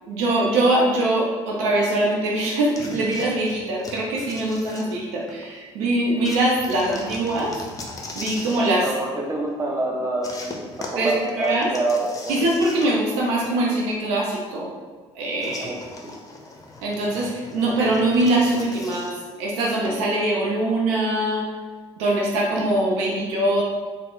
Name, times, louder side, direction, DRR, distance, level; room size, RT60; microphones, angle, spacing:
voice 1, 0.0-7.5 8.1-8.9 11.0-11.7 12.3-14.7 15.2-15.7 16.8-19.1 19.4-21.5 22.0-23.6, right 1 dB, 65° right, -2 dB, 0.6 m, -22 dB
sound 1, 2.7-5.4 6.2-8.8 10.2-13.2 13.4-13.5 15.4-19.2, left 2 dB, 25° left, 0.6 m, -39 dB
voice 2, 8.8-10.6 10.9-12.3 15.6-15.8, right 2 dB, 20° right, -1 dB, 0.7 m, -26 dB
3.7 x 2.1 x 3.7 m, 1.4 s
figure-of-eight pair, 50°, 15 cm